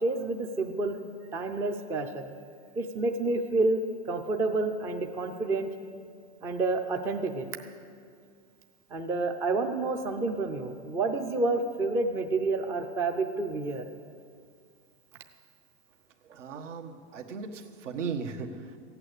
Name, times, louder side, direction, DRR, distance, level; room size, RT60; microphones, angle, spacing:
voice 1, 0.0-1.0 1.3-2.3 2.8-3.8 4.1-5.7 6.4-7.5 8.9-13.9, right 3 dB, 10° right, 5 dB, 0.3 m, -29 dB
voice 2, 16.2-18.8, right 5 dB, 85° right, 4 dB, 1.6 m, -37 dB
15.0 x 8.9 x 8.1 m, 2.1 s
hypercardioid pair, 140°, 36 cm